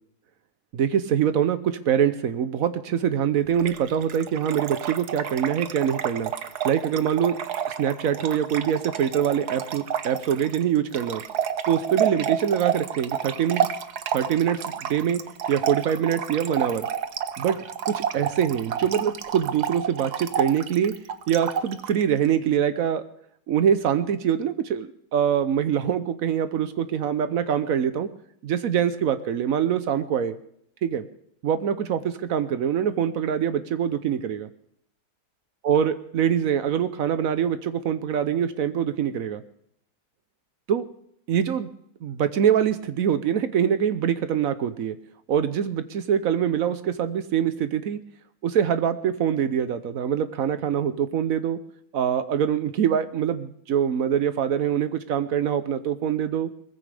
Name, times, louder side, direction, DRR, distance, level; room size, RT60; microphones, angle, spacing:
voice 1, 0.7-6.3 6.6-7.4 7.8-11.2 11.7-13.7 14.1-15.2 15.5-16.9 17.4-17.6 17.8-20.9 21.3-23.0 23.5-28.1 28.4-30.4 30.8-31.0 31.4-34.5 35.6-39.4 40.7-40.9 41.3-41.7 42.0-45.0 45.3-48.0 48.4-51.6 51.9-56.5, right 8 dB, 80° right, 11 dB, 0.7 m, -24 dB
Trickle dribble / Fill (with liquid), 3.6-22.0, right 8 dB, 60° right, 1.2 m, -30 dB
20.5 x 15.0 x 3.4 m, 0.70 s
omnidirectional pair, 2.4 m